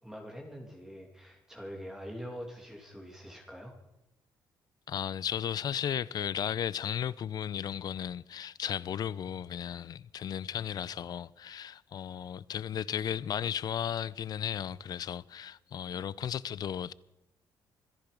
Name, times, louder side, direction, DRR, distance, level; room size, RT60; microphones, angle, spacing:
voice 1, 0.0-3.7, equal, 5° right, 2.8 m, -44 dB
voice 2, 4.9-16.9, left 9 dB, 55° left, 0.6 m, -35 dB
25.5 x 10.5 x 5.3 m
cardioid pair, 100°, 8 cm